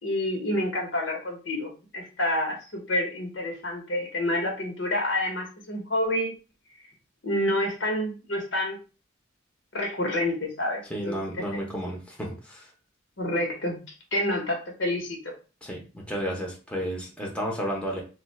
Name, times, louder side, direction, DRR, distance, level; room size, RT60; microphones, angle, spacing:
voice 1, 0.0-6.3 7.2-8.8 9.7-11.5 13.2-13.8 14.1-15.2, left 1 dB, 65° left, 1 dB, 1.1 m, -28 dB
voice 2, 10.9-12.7 15.6-18.0, equal, 5° left, -2 dB, 0.8 m, -32 dB
2.6 x 2.4 x 4.1 m, 0.34 s
head